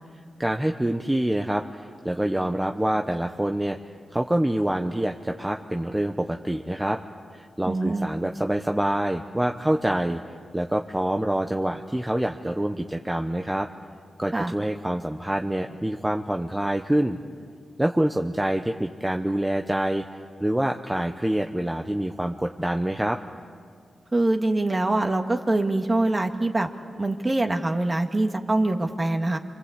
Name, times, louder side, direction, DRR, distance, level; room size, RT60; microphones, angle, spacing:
voice 1, 0.4-3.8 4.1-7.0 7.3-10.2 10.5-13.7 14.2-17.2 17.8-20.0 20.4-23.2, right 1 dB, 10° right, 4 dB, 1.1 m, -26 dB
voice 2, 7.6-8.1 14.3-14.5 24.1-26.7 27.0-29.4, right 2 dB, 30° right, 4 dB, 2.2 m, -24 dB
27.5 x 24.5 x 8.4 m, 2.2 s
cardioid pair, 60°, 0 cm